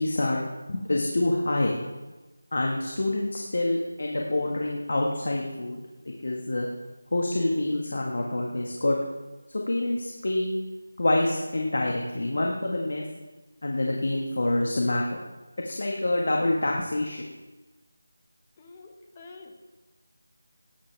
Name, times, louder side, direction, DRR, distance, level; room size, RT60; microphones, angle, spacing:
voice 1, 0.0-1.7 2.5-5.8 6.2-6.7 7.1-9.0 9.7-10.5 11.0-13.0 13.6-15.2 15.6-17.3, left 2 dB, 60° left, 0 dB, 1.7 m, -26 dB
voice 2, 18.6-19.6, left 3 dB, 20° left, 2 dB, 1.0 m, -47 dB
17.5 x 9.8 x 3.5 m, 1.2 s
figure-of-eight pair, 175°, 0 cm